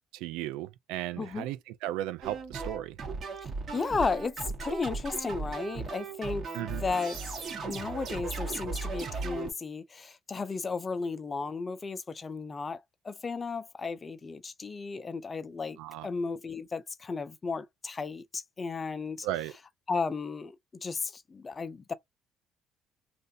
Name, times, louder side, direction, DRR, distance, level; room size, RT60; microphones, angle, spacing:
voice 1, 0.1-3.0 6.5-6.8 15.8-16.1 19.2-19.5, right 13 dB, 90° right, 0.5 m, -35 dB
sound 1, 2.2-9.5, right 4 dB, 45° right, 1.9 m, -37 dB
voice 2, 3.7-4.3 4.6-12.8 13.0-15.8 16.0-19.3 19.9-20.6 20.8-21.9, left 4 dB, 30° left, 0.5 m, -34 dB
3.2 x 2.5 x 2.7 m
cardioid pair, 90°, 0 cm